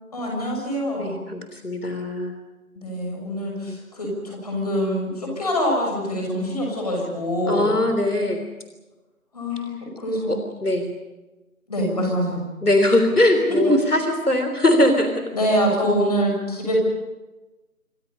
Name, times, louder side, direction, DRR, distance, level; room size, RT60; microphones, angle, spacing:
voice 1, 0.1-1.2 2.7-7.7 9.3-10.3 11.7-12.5 13.5-13.7 15.3-16.8, equal, 25° left, -1 dB, 6.6 m, -24 dB
voice 2, 1.0-2.3 3.7-3.8 7.5-8.5 10.3-10.9 12.6-15.2, left 1 dB, 85° left, 6 dB, 3.5 m, -21 dB
28.5 x 25.0 x 5.5 m, 1.1 s
figure-of-eight pair, 165°, 44 cm